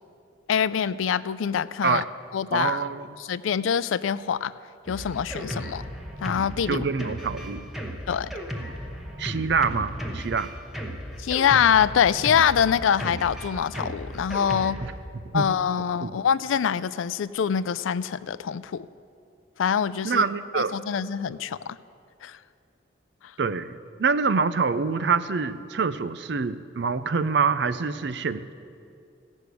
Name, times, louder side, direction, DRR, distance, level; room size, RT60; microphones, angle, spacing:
voice 1, 0.5-2.0 2.3-2.8 3.3-4.5 4.9-5.8 6.2-6.9 8.1-8.3 11.2-14.8 15.3-18.9 19.6-20.2 20.5-21.8 22.2-22.4, left 8 dB, 90° left, 16 dB, 0.4 m, -24 dB
voice 2, 2.5-3.1 6.7-7.7 9.2-10.5 14.8-15.5 16.0-16.2 20.0-20.8 23.4-28.5, right 5 dB, 60° right, 14 dB, 0.5 m, -26 dB
Drum kit, 4.9-14.9, equal, ahead, 1.0 m, -35 dB
16.5 x 6.3 x 8.3 m, 2.5 s
head